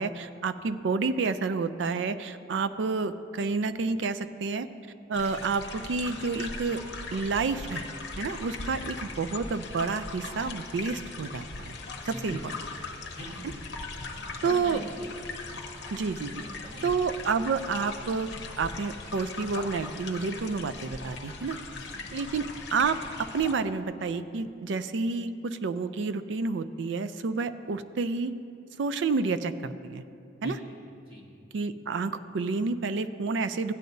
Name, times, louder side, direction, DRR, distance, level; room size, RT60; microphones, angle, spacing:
voice 1, 0.0-4.7 5.1-6.8 7.1-7.8 8.2-11.7 12.1-12.4 14.4-14.8 15.9-16.4 16.8-18.3 18.6-21.6 22.1-22.4 22.7-28.3 28.8-30.0 30.4-30.6 31.5-33.7, right 4 dB, 75° right, 12 dB, 0.4 m, -29 dB
sound 1, 5.1-23.5, left 3 dB, 65° left, 0.9 m, -40 dB
voice 2, 12.0-12.4 13.1-13.5 14.1-15.2 16.4-16.9 21.7-22.0 30.4-30.6 31.1-31.2, left 1 dB, 30° right, -3 dB, 1.6 m, -42 dB
15.5 x 9.3 x 2.7 m, 2.5 s
head